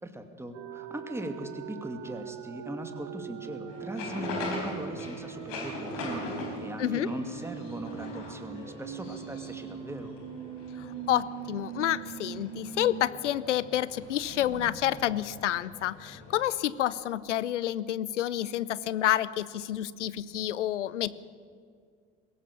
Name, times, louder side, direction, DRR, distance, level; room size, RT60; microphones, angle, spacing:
voice 1, 0.0-6.3 6.6-10.1, right 1 dB, 5° right, 6 dB, 2.5 m, -39 dB
sound 1, 0.5-13.0 13.4-13.5 13.8-16.5, right 10 dB, 50° right, 1.3 m, -42 dB
sound 2, 3.7-16.5, left 3 dB, 60° left, 4.5 m, -42 dB
voice 2, 10.8-21.2, left 12 dB, 80° left, 19 dB, 0.7 m, -29 dB
21.5 x 17.5 x 6.9 m, 2.2 s
figure-of-eight pair, 60°, 35 cm